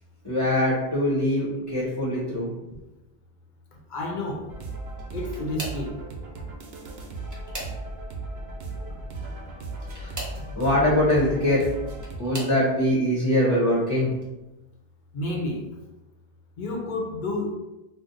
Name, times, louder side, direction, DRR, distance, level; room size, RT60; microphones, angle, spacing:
voice 1, 0.2-2.5 10.0-10.1 10.5-11.6 12.2-14.1, left 1 dB, 20° left, -9 dB, 0.7 m, -23 dB
voice 2, 3.9-4.5 5.1-5.9 15.1-15.6 16.6-17.5, left 2 dB, 55° left, 0 dB, 0.7 m, -30 dB
sound 1, 4.5-12.2, right 2 dB, 85° right, 0.9 m, -36 dB
sound 2, 4.9-5.9 6.9-8.1 9.7-10.4 11.5-12.6 13.3-13.7 14.1-14.3 15.6-15.7, right 1 dB, 20° right, 0.7 m, -39 dB
2.6 x 2.1 x 3.8 m, 0.98 s
omnidirectional pair, 1.0 m